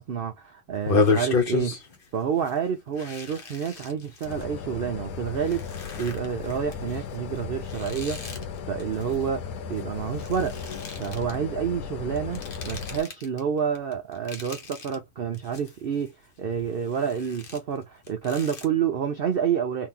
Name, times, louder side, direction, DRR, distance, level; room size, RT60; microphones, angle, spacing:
voice 1, 0.0-1.8 2.1-10.6 11.0-19.9, right 7 dB, 90° right, 0.5 m, -29 dB
sound 1, 0.7-2.1 2.4-2.6 2.9-4.4 5.0-9.8 10.1-11.3 12.2-13.4 13.7-14.9 15.3-16.1 16.4-18.7, left 4 dB, 45° left, 0.8 m, -31 dB
sound 2, 4.2-13.0, left 6 dB, 75° left, 1.0 m, -36 dB
2.8 x 2.6 x 3.6 m
omnidirectional pair, 1.6 m